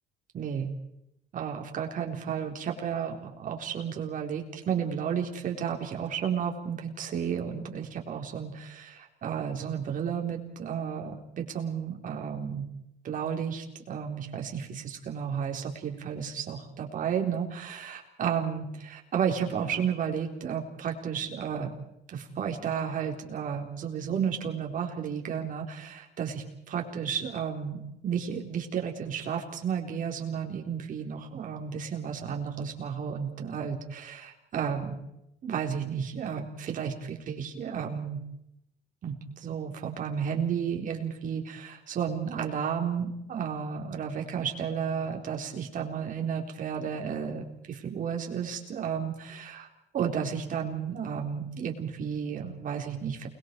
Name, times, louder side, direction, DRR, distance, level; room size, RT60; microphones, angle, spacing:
voice 1, 0.3-0.7 1.3-12.7 13.0-21.7 22.1-35.0 35.4-38.2 39.0-49.7 49.9-53.3, right 7 dB, 50° right, 2 dB, 4.1 m, -32 dB
29.5 x 21.5 x 4.7 m, 0.83 s
cardioid pair, 110°, 17 cm